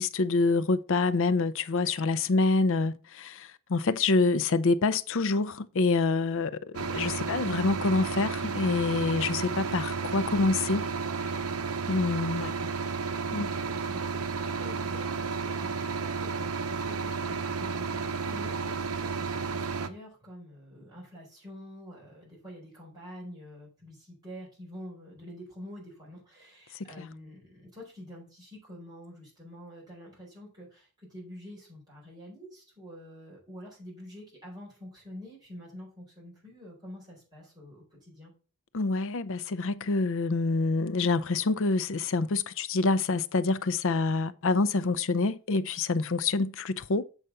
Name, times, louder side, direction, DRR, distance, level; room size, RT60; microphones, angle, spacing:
voice 1, 0.0-10.8 11.9-12.5 13.3-13.5 26.8-27.1 38.7-47.0, left 3 dB, 60° left, 0.6 m, -26 dB
sound 1, 6.7-19.9, right 5 dB, 80° right, 0.8 m, -32 dB
voice 2, 13.3-38.3, equal, 20° right, 4.5 m, -47 dB
8.0 x 5.0 x 5.5 m
head